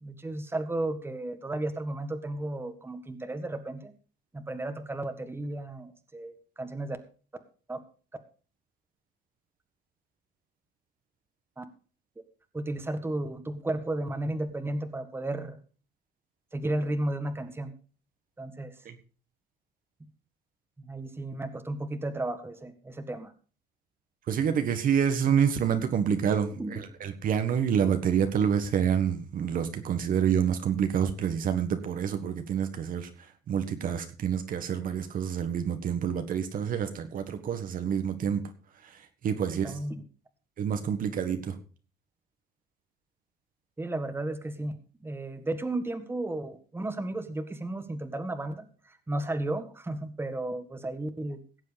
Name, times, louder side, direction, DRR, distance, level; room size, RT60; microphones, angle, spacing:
voice 1, 0.0-3.9 4.3-7.0 7.7-7.8 11.6-11.7 12.5-15.6 16.5-17.7 18.4-18.7 20.8-23.3 26.6-26.7 39.5-40.0 43.8-44.8 45.0-51.4, right 2 dB, 15° right, 8 dB, 1.6 m, -34 dB
voice 2, 24.3-38.4 38.8-39.8 40.6-41.6, right 8 dB, 55° right, 8 dB, 1.6 m, -28 dB
17.5 x 7.6 x 5.1 m, 0.39 s
cardioid pair, 110°, 17 cm